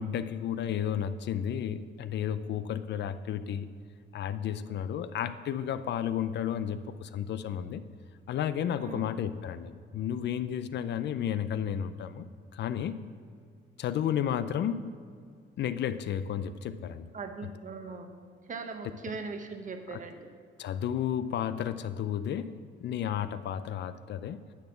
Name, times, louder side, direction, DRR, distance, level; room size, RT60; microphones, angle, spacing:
voice 1, 0.0-3.7 4.1-7.8 8.3-12.3 12.5-13.0 13.8-14.9 15.6-17.1 17.4-17.5 19.9-20.0 20.6-24.4, left 9 dB, 60° left, 13 dB, 0.4 m, -32 dB
voice 2, 8.8-9.1 17.1-18.1 18.5-20.2, right 4 dB, 40° right, 6 dB, 1.0 m, -40 dB
9.9 x 4.2 x 7.1 m, 2.1 s
cardioid pair, 90°, 20 cm